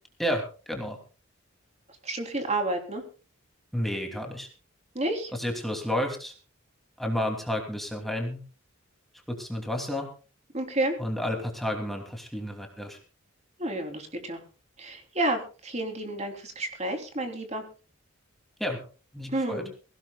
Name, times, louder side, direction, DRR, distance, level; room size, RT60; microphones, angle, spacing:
voice 1, 0.2-1.0 3.7-4.5 5.3-6.3 7.0-8.4 9.3-10.1 11.0-13.0 18.6-18.8 19.1-19.6, left 1 dB, ahead, 2 dB, 2.9 m, -31 dB
voice 2, 2.0-3.0 4.9-5.3 10.5-11.0 13.6-14.4 14.8-17.6 19.3-19.7, right 2 dB, 35° right, 4 dB, 3.4 m, -30 dB
22.0 x 17.5 x 2.4 m, 0.35 s
head